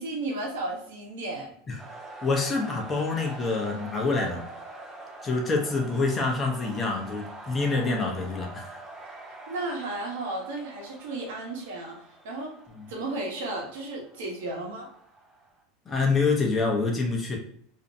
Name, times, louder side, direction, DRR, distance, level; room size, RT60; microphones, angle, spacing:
voice 1, 0.0-1.5 9.5-12.0 12.2-12.5 12.9-14.9, right 2 dB, 80° right, -1 dB, 0.8 m, -33 dB
sound 1, 1.8-15.6, right 2 dB, 20° right, 0.7 m, -45 dB
voice 2, 2.2-4.5 5.2-8.8 12.8-12.9 15.9-17.4, left 3 dB, 20° left, 0 dB, 0.5 m, -26 dB
2.5 x 2.1 x 2.6 m, 0.65 s
supercardioid pair, 125°, 0 cm